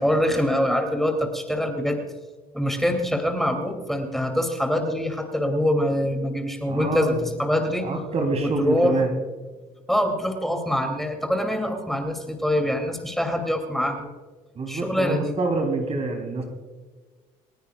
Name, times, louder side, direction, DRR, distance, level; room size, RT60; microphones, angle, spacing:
voice 1, 0.0-2.0 2.5-7.9 8.4-9.0 9.9-14.1 14.7-15.3, left 1 dB, ahead, 3 dB, 2.6 m, -24 dB
voice 2, 6.7-7.2 7.8-9.1 14.5-16.4, right 3 dB, 40° right, 4 dB, 3.1 m, -26 dB
29.0 x 10.0 x 2.4 m, 1.3 s
cardioid pair, 95°, 16 cm